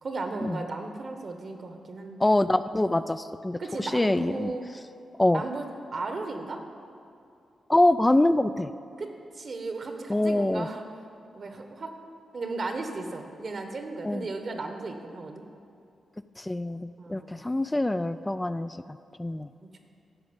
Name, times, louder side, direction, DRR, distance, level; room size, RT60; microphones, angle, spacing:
voice 1, 0.0-2.6 3.6-4.6 5.3-5.7 5.9-6.6 9.0-10.8 11.3-11.9 12.3-15.4 17.0-17.5 19.6-19.8, right 3 dB, 55° right, 5 dB, 1.4 m, -35 dB
voice 2, 2.2-4.5 5.2-5.4 7.7-8.7 10.1-10.7 14.0-14.2 16.4-19.5, left 1 dB, 20° left, 10 dB, 0.4 m, -25 dB
13.5 x 5.0 x 8.2 m, 2.5 s
supercardioid pair, 45°, 0 cm